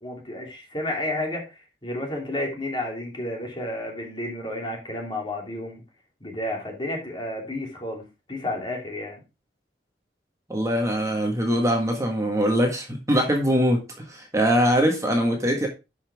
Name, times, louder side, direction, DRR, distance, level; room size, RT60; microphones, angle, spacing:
voice 1, 0.0-1.5 1.8-5.8 6.2-8.0 8.3-9.2, left 1 dB, 25° left, 0 dB, 3.0 m, -31 dB
voice 2, 10.5-15.7, equal, 20° right, 1 dB, 1.7 m, -22 dB
11.0 x 5.8 x 3.5 m, 0.27 s
head